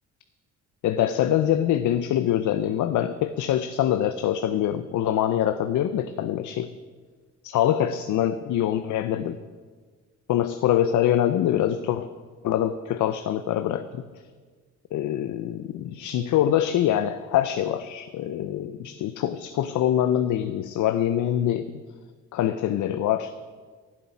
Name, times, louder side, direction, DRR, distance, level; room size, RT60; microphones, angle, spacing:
voice 1, 0.8-6.7 7.4-9.4 10.3-12.1 12.4-14.0 14.9-21.7 22.3-23.3, left 11 dB, 75° left, 11 dB, 0.7 m, -24 dB
12.0 x 7.5 x 9.8 m, 1.5 s
cardioid pair, 90°, 30 cm